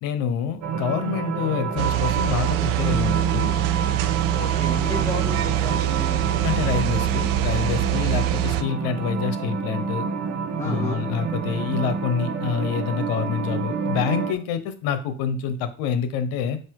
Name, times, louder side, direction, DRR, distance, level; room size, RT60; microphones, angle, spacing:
voice 1, 0.0-3.5 6.4-10.1 10.6-16.6, left 7 dB, 75° left, 10 dB, 1.1 m, -27 dB
sound 1, 0.6-14.3, right 6 dB, 55° right, 1.3 m, -28 dB
sound 2, 1.8-8.6, right 13 dB, 70° right, 0.6 m, -24 dB
voice 2, 4.3-6.2 10.6-11.0, left 1 dB, 5° left, -2 dB, 1.9 m, -32 dB
7.5 x 2.9 x 4.7 m, 0.40 s
supercardioid pair, 90°, 35 cm